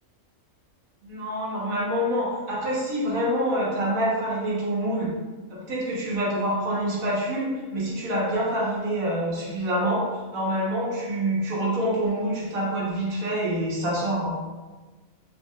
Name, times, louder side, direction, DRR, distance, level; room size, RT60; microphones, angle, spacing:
voice 1, 1.0-5.1 5.5-14.3, right 1 dB, 85° right, -6 dB, 1.5 m, -26 dB
3.9 x 2.1 x 3.6 m, 1.3 s
omnidirectional pair, 1.4 m